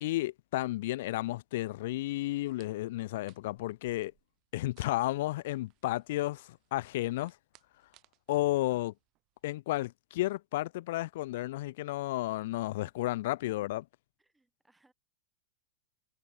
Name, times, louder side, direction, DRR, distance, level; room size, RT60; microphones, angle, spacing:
voice 1, 0.0-4.1 4.5-7.4 8.3-8.9 9.4-13.9, left 17 dB, 65° left, 0.4 m, -32 dB
sound 1, 2.2-9.6, right 20 dB, 45° right, 6.4 m, -68 dB
voice 2, 12.8-13.1 14.2-14.9, right 2 dB, 5° right, 4.7 m, -69 dB
hypercardioid pair, 130°, 0 cm